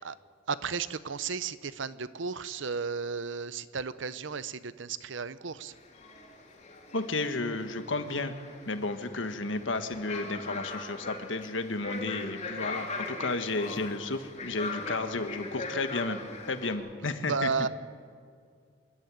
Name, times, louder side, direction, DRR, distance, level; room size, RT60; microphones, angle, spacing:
voice 1, 0.5-5.7 17.3-17.7, right 5 dB, 80° right, 15 dB, 0.7 m, -33 dB
sound 1, 5.7-16.7, left 3 dB, 35° left, 3.1 m, -40 dB
voice 2, 6.9-8.3 8.7-16.2 16.5-17.5, left 3 dB, 80° left, 8 dB, 1.5 m, -32 dB
26.5 x 11.5 x 9.4 m, 2.2 s
head